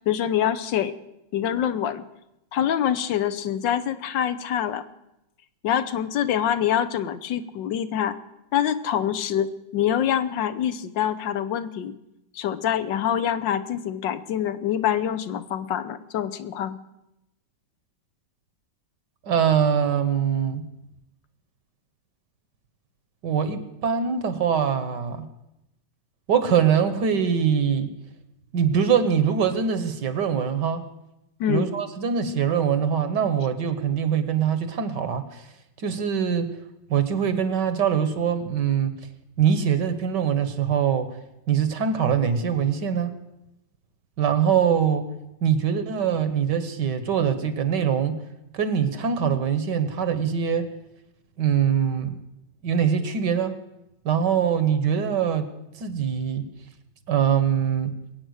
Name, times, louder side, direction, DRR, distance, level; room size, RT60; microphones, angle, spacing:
voice 1, 0.1-0.9 1.3-2.0 2.5-4.8 5.6-8.2 8.5-11.9 12.3-16.8 31.4-31.7, left 10 dB, 70° left, 12 dB, 1.5 m, -25 dB
voice 2, 19.2-20.7 23.2-25.3 26.3-27.9 28.5-30.8 31.5-35.5 35.8-36.5 36.9-38.9 39.4-41.1 41.5-43.1 44.2-45.1 45.4-48.2 48.5-50.7 51.4-52.2 52.6-53.6 54.0-55.5 55.8-56.5 57.1-57.9, right 7 dB, 65° right, 11 dB, 1.7 m, -23 dB
22.0 x 8.9 x 6.4 m, 0.90 s
omnidirectional pair, 2.1 m